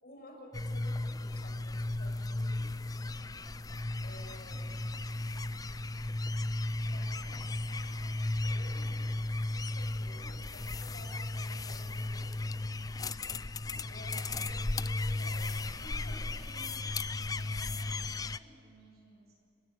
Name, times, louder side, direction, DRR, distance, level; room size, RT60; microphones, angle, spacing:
voice 1, 0.0-2.7 4.0-4.7 6.7-12.5 13.9-16.3, left 1 dB, 60° left, 2 dB, 6.2 m, -53 dB
sound 1, 0.5-18.4, left 2 dB, 20° left, 0.5 m, -35 dB
voice 2, 13.6-14.6 16.3-16.8 17.3-19.4, right 2 dB, 65° right, -2 dB, 7.9 m, -58 dB
30.0 x 17.0 x 9.4 m, 2.6 s
head